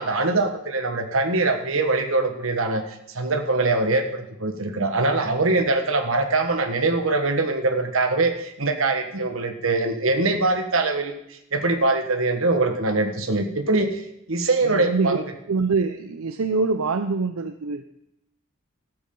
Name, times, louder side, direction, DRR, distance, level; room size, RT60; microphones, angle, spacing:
voice 1, 0.0-15.2, right 2 dB, 70° right, 6 dB, 1.4 m, -23 dB
voice 2, 14.6-15.2 15.5-17.8, right 4 dB, 85° right, 9 dB, 0.6 m, -24 dB
13.0 x 13.0 x 3.8 m, 0.81 s
head